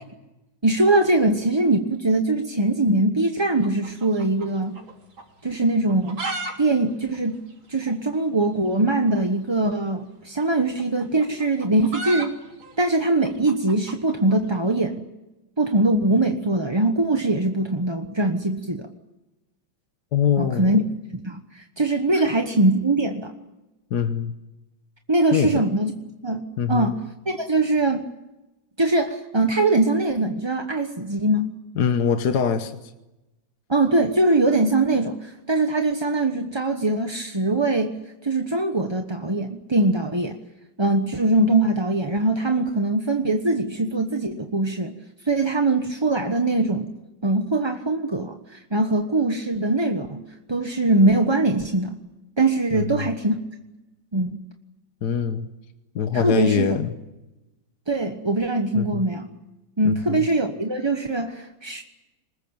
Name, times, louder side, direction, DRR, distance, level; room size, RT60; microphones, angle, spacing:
voice 1, 0.6-4.8 5.4-6.2 6.6-7.4 7.7-12.4 12.8-15.1 15.6-18.9 20.4-20.8 21.2-23.3 25.1-25.9 26.2-26.4 26.7-28.0 28.8-31.5 33.7-38.0 38.2-40.4 40.8-44.9 45.2-46.9 47.2-52.0 52.4-53.4 54.1-54.4 56.1-56.8 57.9-59.3 59.8-61.8, right 2 dB, 20° right, 5 dB, 0.9 m, -22 dB
sound 1, 3.6-4.9 5.2-5.3 5.8-6.5 6.8-6.9 7.1-7.2 7.8-7.9 9.1-9.3 10.4-14.6, right 2 dB, 80° right, 4.0 m, -34 dB
voice 2, 20.1-20.7 22.2-22.3 23.9-24.3 25.3-25.6 26.6-26.9 31.8-32.7 52.7-53.1 55.0-55.5 56.0-56.9 58.8-59.0 59.8-60.2, left 7 dB, 60° left, 8 dB, 1.7 m, -23 dB
25.0 x 20.5 x 8.8 m, 1.0 s
omnidirectional pair, 2.2 m